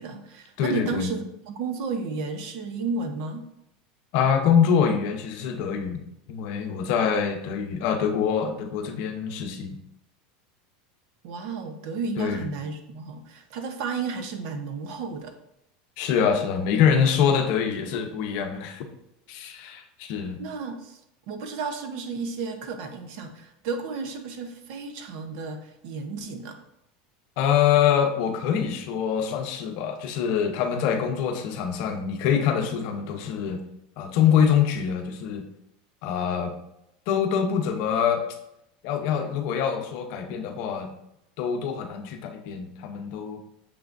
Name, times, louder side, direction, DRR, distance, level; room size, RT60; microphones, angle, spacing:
voice 1, 0.0-3.5 11.2-15.3 20.4-21.0 21.3-26.6, right 4 dB, 55° right, 7 dB, 0.8 m, -33 dB
voice 2, 0.6-1.1 4.1-6.0 6.3-9.8 12.2-12.5 16.0-18.9 19.3-20.4 27.4-33.6 34.0-35.4 36.0-36.5 37.1-38.2 38.8-40.9 41.4-43.4, left 7 dB, 50° left, 5 dB, 0.7 m, -24 dB
6.7 x 5.6 x 2.6 m, 0.80 s
supercardioid pair, 160°, 4 cm